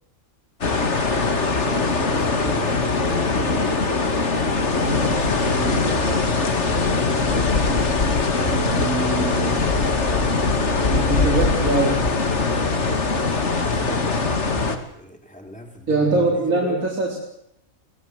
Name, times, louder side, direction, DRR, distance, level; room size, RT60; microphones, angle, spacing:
sound 1, 0.6-14.8, left 3 dB, 50° left, 2.4 m, -21 dB
voice 1, 1.0-3.3 13.3-14.3 15.0-16.9, equal, 5° left, 4 dB, 3.7 m, -37 dB
voice 2, 4.8-6.0 8.5-9.6 10.9-12.0 15.9-17.2, right 2 dB, 70° right, -2 dB, 4.4 m, -24 dB
25.5 x 19.5 x 8.1 m, 0.79 s
omnidirectional pair, 1.5 m